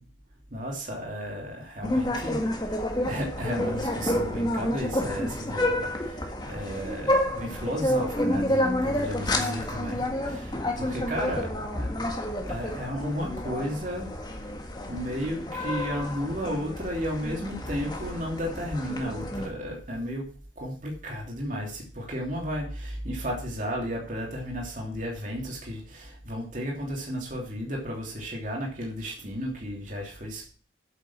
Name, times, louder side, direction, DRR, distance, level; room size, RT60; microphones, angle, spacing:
voice 1, 0.5-11.5 11.7-12.0 12.5-14.1 14.9-30.5, equal, 40° right, 3.0 m, -33 dB
sound 1, 1.8-19.5, left 1 dB, 20° left, 1.6 m, -29 dB
8.6 x 7.4 x 7.2 m
head